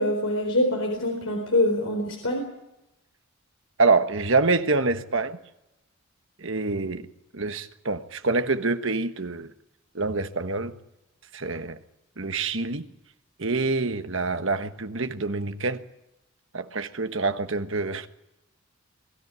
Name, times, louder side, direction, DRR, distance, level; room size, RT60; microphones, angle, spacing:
voice 1, 0.0-2.4, left 1 dB, 70° left, 4.3 m, -24 dB
voice 2, 3.8-5.4 6.4-7.1 7.3-9.5 9.9-10.7 11.3-11.8 12.2-12.9 13.4-15.8 16.5-18.1, right 3 dB, 65° right, 1.4 m, -26 dB
23.0 x 14.0 x 9.8 m
head